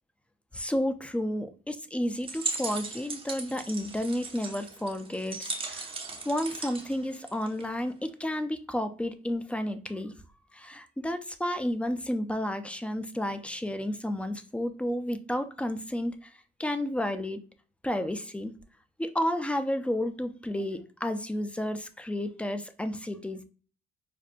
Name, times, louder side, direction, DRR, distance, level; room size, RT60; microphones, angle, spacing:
voice 1, 0.5-5.9 6.3-10.1 10.5-16.3 16.6-17.4 17.8-18.5 19.0-23.4, left 1 dB, 5° left, 9 dB, 0.4 m, -31 dB
sound 1, 2.2-7.8, right 3 dB, 25° right, 0.7 m, -38 dB
5.0 x 2.1 x 2.5 m, 0.39 s
cardioid pair, 90°, 20 cm